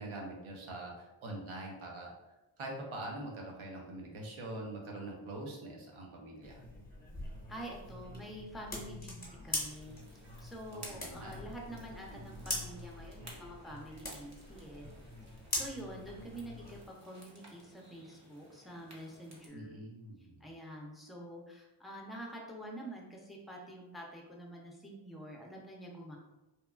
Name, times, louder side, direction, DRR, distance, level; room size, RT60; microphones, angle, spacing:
voice 1, 0.0-2.1 2.6-6.6 10.7-11.4 12.1-12.5 19.5-20.4, right 2 dB, 80° right, 0 dB, 0.7 m, -44 dB
sound 1, 6.4-16.8, left 1 dB, 20° left, 0.8 m, -43 dB
voice 2, 7.5-10.0 10.4-14.9 15.3-19.8 20.2-26.2, right 1 dB, ahead, -1 dB, 0.4 m, -47 dB
sound 2, 9.5-19.5, right 1 dB, 35° right, 0.7 m, -57 dB
2.9 x 2.2 x 2.2 m, 1.0 s
wide cardioid pair, 100°, 48 cm